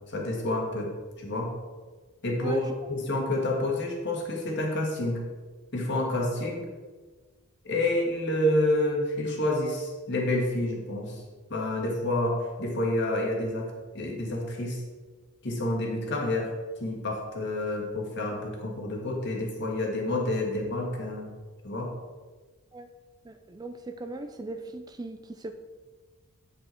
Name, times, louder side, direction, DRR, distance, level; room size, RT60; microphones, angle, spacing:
voice 1, 0.1-1.5 2.2-5.2 5.7-6.7 7.6-11.2 11.5-14.8 15.4-16.5 16.8-21.3 21.6-21.9, left 1 dB, 55° left, 0 dB, 1.7 m, -29 dB
voice 2, 23.2-25.5, right 2 dB, 20° right, 7 dB, 0.4 m, -38 dB
8.7 x 5.6 x 4.4 m, 1.4 s
head